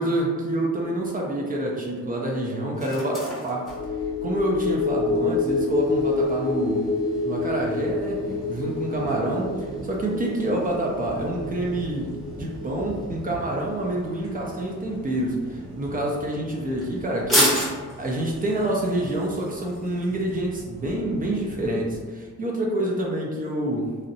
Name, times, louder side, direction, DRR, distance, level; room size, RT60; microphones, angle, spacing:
voice 1, 0.0-3.7 4.2-6.9 7.2-8.2 8.5-17.6 18.0-23.9, right 1 dB, 30° right, -2 dB, 0.4 m, -27 dB
sound 1, 0.8-20.4, equal, ahead, 0.8 m, -35 dB
sound 2, 3.7-14.3 14.6-14.8, left 3 dB, 50° left, 0.6 m, -28 dB
sound 3, 5.3-22.0, right 1 dB, 85° right, 0.9 m, -43 dB
2.6 x 2.0 x 2.6 m, 1.5 s
cardioid pair, 90°, 30 cm